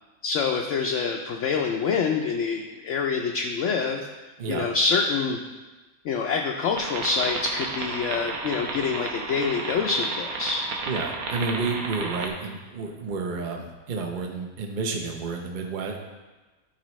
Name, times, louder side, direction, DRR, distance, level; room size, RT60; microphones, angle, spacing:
voice 1, 0.2-4.1 4.5-5.4 6.0-10.6, left 5 dB, 65° left, 1 dB, 0.9 m, -26 dB
sound 1, 6.8-12.3, right 4 dB, 85° right, 1.3 m, -33 dB
voice 2, 10.9-16.0, right 4 dB, 40° right, 2 dB, 0.8 m, -30 dB
11.5 x 4.6 x 3.1 m, 1.2 s
omnidirectional pair, 1.5 m